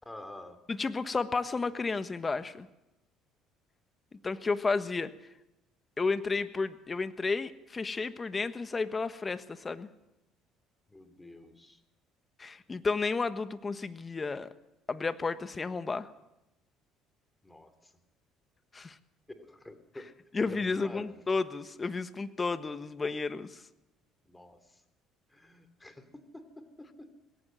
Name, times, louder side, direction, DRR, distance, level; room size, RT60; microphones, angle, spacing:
voice 1, 0.0-0.6 10.9-11.8 17.4-17.9 19.3-20.1 20.4-21.2 24.2-24.8 25.3-26.1 26.3-27.1, left 1 dB, 10° left, 9 dB, 3.2 m, -48 dB
voice 2, 0.7-2.7 4.1-5.1 6.0-9.9 12.4-14.5 14.9-16.1 18.7-19.0 20.3-23.6, left 4 dB, 30° left, 12 dB, 1.3 m, -32 dB
20.0 x 17.5 x 7.7 m, 0.93 s
supercardioid pair, 75°, 0 cm